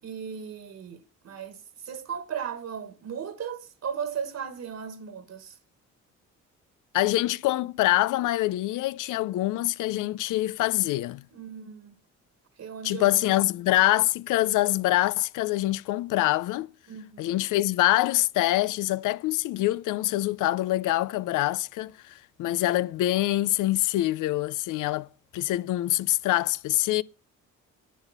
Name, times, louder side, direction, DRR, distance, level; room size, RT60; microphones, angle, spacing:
voice 1, 0.0-5.6 11.3-12.0 12.6-13.5 16.9-17.4, right 7 dB, 60° right, 1.7 m, -37 dB
voice 2, 6.9-11.2 12.8-16.7 17.2-25.1 25.3-27.0, left 16 dB, 85° left, 0.6 m, -25 dB
10.0 x 8.3 x 7.2 m
cardioid pair, 90°, 30 cm